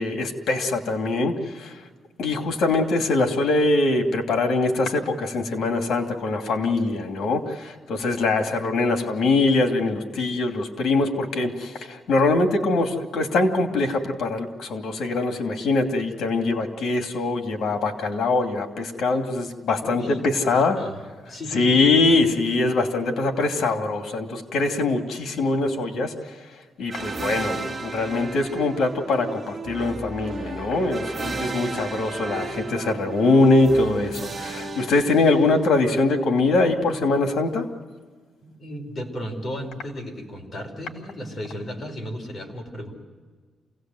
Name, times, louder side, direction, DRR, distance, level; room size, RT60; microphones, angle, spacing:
voice 1, 0.0-1.8 2.2-20.8 21.5-26.1 26.8-37.7, left 3 dB, 75° left, 5 dB, 2.7 m, -23 dB
voice 2, 19.8-20.2 20.5-21.0 21.3-21.8 38.4-43.0, equal, 35° left, 2 dB, 4.7 m, -34 dB
sound 1, 26.9-35.8, right 3 dB, 30° right, 2.2 m, -34 dB
27.5 x 18.0 x 7.8 m, 1.5 s
cardioid pair, 135°, 0 cm